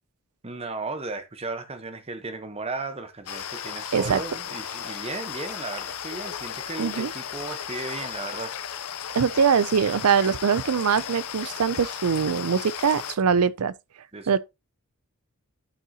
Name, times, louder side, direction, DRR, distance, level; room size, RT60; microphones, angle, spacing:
voice 1, 0.4-8.5 14.1-14.4, right 3 dB, 25° right, 1.0 m, -35 dB
sound 1, 3.3-13.2, left 8 dB, 80° left, 0.7 m, -35 dB
voice 2, 6.8-7.1 9.1-13.7 14.3-14.4, right 6 dB, 75° right, 0.5 m, -22 dB
11.5 x 5.5 x 2.9 m
head